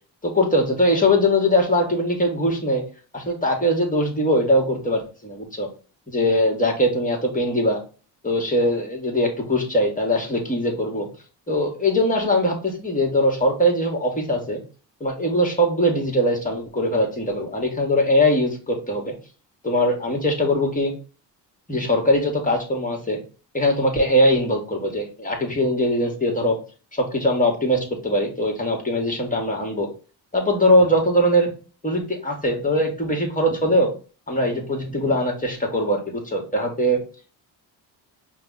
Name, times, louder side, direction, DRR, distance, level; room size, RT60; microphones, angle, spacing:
voice 1, 0.2-2.8 3.1-5.7 6.1-7.8 8.2-11.1 11.5-14.6 15.0-19.1 19.6-20.9 21.7-23.2 23.5-26.6 26.9-29.9 30.3-31.5 31.8-33.9 34.3-37.0, equal, 15° left, 2 dB, 1.7 m, -21 dB
5.2 x 2.4 x 4.1 m, 0.35 s
supercardioid pair, 60°, 49 cm